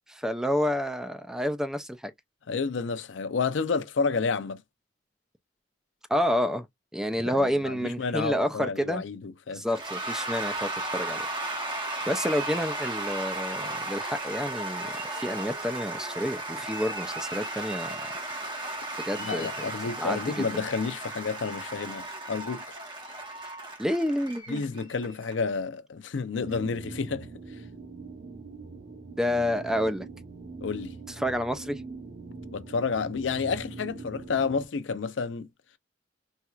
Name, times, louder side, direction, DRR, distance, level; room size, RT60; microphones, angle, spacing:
voice 1, 0.1-2.0 6.1-6.7 6.9-9.0 9.5-11.2 12.1-18.1 19.0-19.5 20.0-20.6 23.8-24.6 29.2-30.1 31.1-31.8, equal, 5° right, 0.4 m, -29 dB
voice 2, 2.5-4.6 7.2-9.7 19.2-22.7 24.5-27.3 30.6-31.0 32.5-35.5, left 5 dB, 85° left, 0.5 m, -30 dB
Cheering / Applause / Crowd, 9.7-25.3, right 2 dB, 25° right, 1.0 m, -35 dB
sound 1, 26.4-34.7, right 3 dB, 80° right, 1.1 m, -42 dB
4.2 x 2.3 x 2.3 m
head